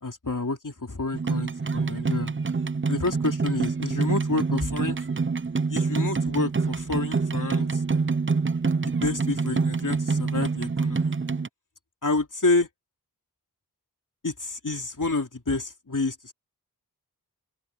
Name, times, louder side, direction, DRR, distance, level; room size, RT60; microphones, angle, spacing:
voice 1, 0.0-2.3 2.9-5.0 5.7-7.8 8.8-11.1 12.0-12.7 14.2-16.3, left 3 dB, 55° left, 3.3 m, -29 dB
sound 1, 1.1-11.5, right 4 dB, 35° right, 0.6 m, -26 dB
open air
wide cardioid pair, 40°, 37 cm